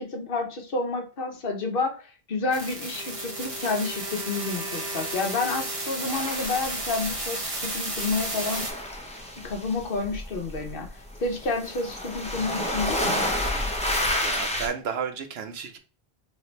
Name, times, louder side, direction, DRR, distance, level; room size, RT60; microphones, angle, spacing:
voice 1, 0.0-2.0 2.3-8.7 9.4-13.2, left 3 dB, 60° left, 1.0 m, -29 dB
sound 1, 2.5-8.7, right 2 dB, 35° right, 1.1 m, -33 dB
Wind instrument woodwind instrument, 2.8-6.3, right 1 dB, 50° right, 1.3 m, -41 dB
sound 2, 6.1-7.7 8.0-14.7, left 1 dB, 5° left, 0.7 m, -30 dB
voice 2, 14.2-15.8, right 6 dB, 80° right, 0.9 m, -32 dB
3.2 x 2.7 x 4.4 m
omnidirectional pair, 1.0 m